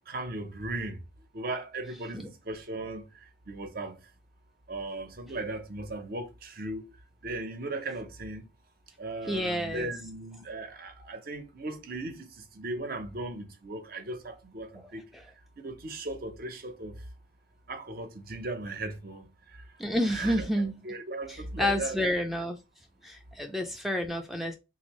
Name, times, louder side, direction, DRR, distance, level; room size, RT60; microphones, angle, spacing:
voice 1, 0.1-1.0 1.3-3.0 3.5-4.0 4.7-6.8 7.2-8.5 9.0-15.0 15.6-17.0 17.7-19.3 20.0-20.5 20.8-22.0, right 2 dB, 55° right, 0.8 m, -37 dB
voice 2, 9.3-9.9 14.7-15.2 19.8-20.8 21.3-22.6 23.0-24.5, equal, ahead, 0.4 m, -30 dB
3.4 x 2.7 x 2.9 m
head